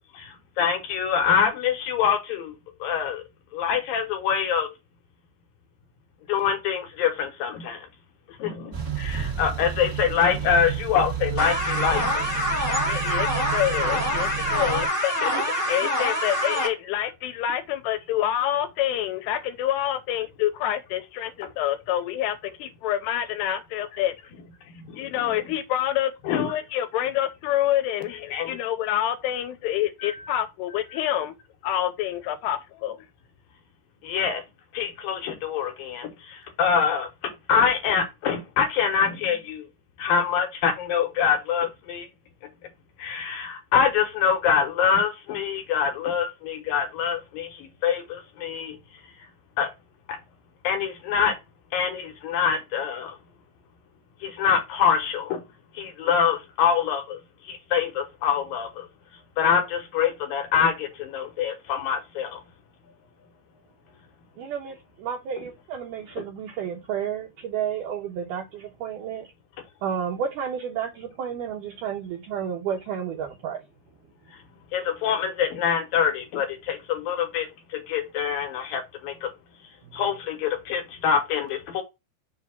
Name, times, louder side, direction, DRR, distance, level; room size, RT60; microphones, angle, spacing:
voice 1, 0.2-2.5 2.8-3.2 3.5-4.7 6.3-7.9 8.4-12.3 15.2-15.3 24.8-25.3 26.2-26.5 28.3-28.6 30.0-30.1 34.0-34.4 34.7-39.6 40.0-42.1 43.0-48.8 49.6-49.7 50.1-50.2 50.6-51.4 51.7-53.2 54.2-55.4 55.7-57.2 57.4-58.9 59.4-62.4 74.7-79.3 79.9-81.8, left 7 dB, 70° left, 2.5 m, -25 dB
sound 1, 8.7-14.9, right 8 dB, 25° right, 1.7 m, -31 dB
sound 2, 11.4-16.7, equal, 55° left, 0.5 m, -25 dB
voice 2, 12.8-15.1 15.7-24.1 25.0-31.3 31.6-33.0, left 11 dB, 85° left, 2.8 m, -27 dB
voice 3, 64.4-69.3 69.8-73.6 79.8-80.0, right 8 dB, 80° right, 1.8 m, -31 dB
6.5 x 2.8 x 5.7 m
omnidirectional pair, 4.8 m